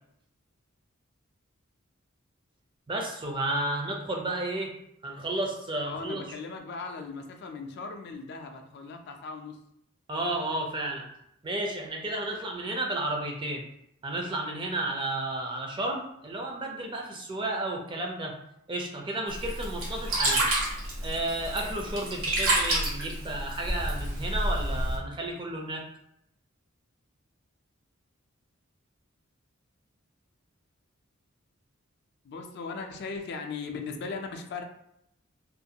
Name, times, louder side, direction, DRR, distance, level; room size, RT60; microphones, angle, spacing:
voice 1, 2.9-4.7 5.0-6.2 10.1-11.1 11.4-13.6 14.0-18.3 18.7-20.5 21.0-25.8, right 1 dB, 25° right, 1 dB, 0.4 m, -32 dB
voice 2, 5.9-9.6 32.2-34.6, left 4 dB, 50° left, 4 dB, 0.3 m, -38 dB
Sink (filling or washing), 19.3-25.0, right 1 dB, 75° right, 1.0 m, -29 dB
2.5 x 2.2 x 2.7 m, 0.75 s
head